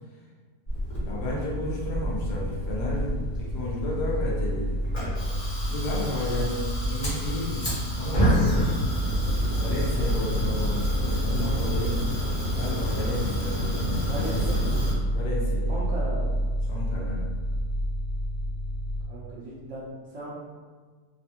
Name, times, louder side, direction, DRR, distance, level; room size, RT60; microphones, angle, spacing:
Fire, 0.7-14.9, equal, 35° left, 0.9 m, -29 dB
voice 1, 1.1-4.8 5.7-8.7 9.5-12.0 12.6-14.6 15.1-15.9 16.7-17.3, left 1 dB, 80° left, -5 dB, 1.3 m, -32 dB
sound 1, 1.9-19.1, equal, 60° left, 1.3 m, -30 dB
voice 2, 13.9-14.8 15.7-16.4 19.1-20.3, right 1 dB, 60° right, -7 dB, 0.9 m, -36 dB
3.4 x 2.2 x 2.8 m, 1.5 s
omnidirectional pair, 1.7 m